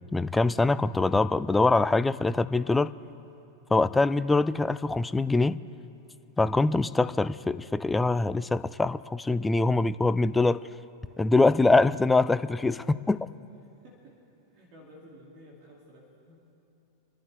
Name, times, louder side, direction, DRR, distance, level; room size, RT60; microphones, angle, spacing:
voice 1, 0.1-2.9 3.7-5.6 6.4-10.6 11.2-12.8 13.1-13.2, left 3 dB, 10° left, 15 dB, 0.3 m, -23 dB
voice 2, 13.8-14.2 14.5-16.6, equal, 45° right, -3 dB, 2.5 m, -53 dB
28.0 x 11.5 x 3.4 m, 2.8 s
figure-of-eight pair, 90°, 0 cm